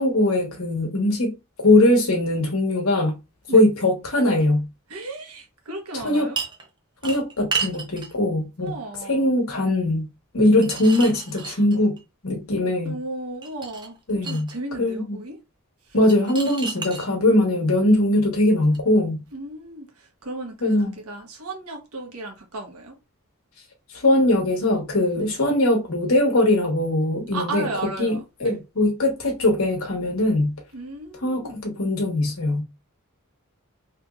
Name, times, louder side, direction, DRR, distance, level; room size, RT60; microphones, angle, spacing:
voice 1, 0.0-1.3 1.6-3.2 3.5-4.7 6.0-6.3 7.0-8.7 9.1-10.0 10.3-11.9 12.2-13.0 14.1-14.5 14.8-15.2 15.9-19.2 20.6-20.9 23.9-27.7 28.0-30.5 31.2-32.6, left 1 dB, 70° left, 1.1 m, -21 dB
voice 2, 4.9-6.4 8.6-9.3 11.3-11.6 12.8-15.4 15.8-16.2 19.3-23.0 25.2-25.3 27.3-28.6 30.7-31.6, right 2 dB, 85° right, 1.1 m, -35 dB
sound 1, 6.4-6.7 7.0-8.1 10.4-12.0 13.4-14.6 16.1-17.1 18.7-18.8, right 5 dB, 20° right, 0.6 m, -31 dB
3.3 x 3.0 x 2.4 m
head